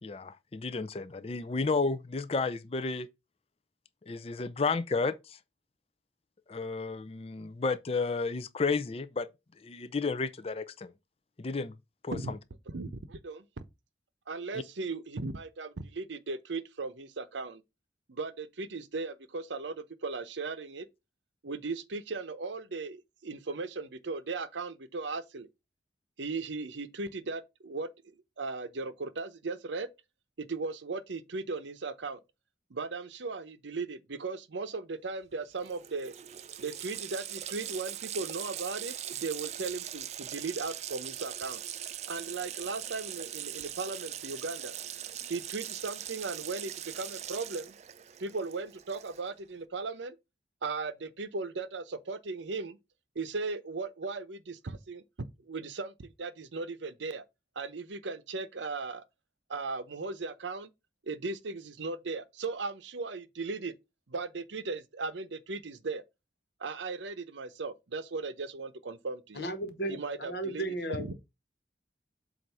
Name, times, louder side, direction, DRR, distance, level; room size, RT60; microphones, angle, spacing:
voice 1, 0.0-3.1 4.1-5.4 6.5-9.3 9.6-10.9 11.4-11.7 12.0-12.4 14.5-14.6, left 4 dB, 30° left, 0.4 m, -32 dB
voice 2, 12.7-13.4 14.3-17.6 18.1-20.9 21.4-25.5 26.2-27.9 28.4-29.9 30.4-32.2 32.7-36.1 36.6-41.6 42.1-44.7 45.3-47.7 48.2-50.2 50.6-52.8 53.1-55.0 55.5-57.2 57.6-59.0 59.5-60.7 61.1-63.7 64.1-66.0 66.6-69.4 69.9-70.6 71.0-71.1, right 3 dB, 85° right, 0.7 m, -37 dB
Water tap faucet, 35.3-35.4 35.6-49.4, right 11 dB, 40° right, 0.4 m, -41 dB
voice 3, 69.3-71.1, right 2 dB, 65° left, 1.4 m, -35 dB
7.8 x 2.6 x 5.5 m
head